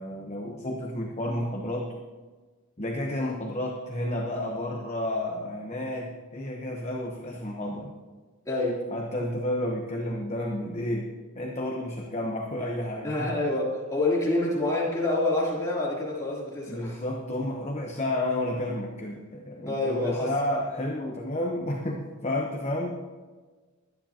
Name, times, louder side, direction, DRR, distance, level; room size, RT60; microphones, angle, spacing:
voice 1, 0.0-1.9 2.8-7.9 8.9-11.1 11.3-13.3 16.7-22.9, left 1 dB, 30° left, 0 dB, 1.0 m, -31 dB
voice 2, 8.4-8.8 13.0-17.0 19.6-20.3, left 2 dB, 15° left, -6 dB, 3.2 m, -27 dB
22.5 x 10.0 x 2.9 m, 1.4 s
head